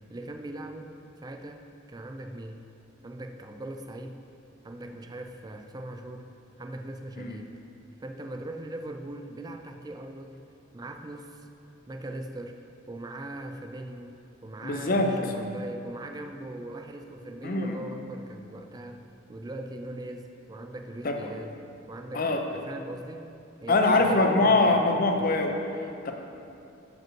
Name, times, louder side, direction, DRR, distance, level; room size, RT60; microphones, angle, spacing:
voice 1, 0.1-0.9 1.2-2.6 3.0-4.2 4.6-6.3 6.6-7.5 8.0-10.4 10.7-11.5 11.9-12.6 12.9-14.2 14.4-19.0 19.3-21.6 21.9-23.3 23.6-24.4 24.6-25.4, right 1 dB, 20° right, 5 dB, 0.4 m, -40 dB
voice 2, 14.6-15.1 17.4-17.8 21.0-21.2 22.1-22.4 23.7-26.1, left 2 dB, 45° left, 4 dB, 0.5 m, -23 dB
7.6 x 5.1 x 4.5 m, 2.7 s
head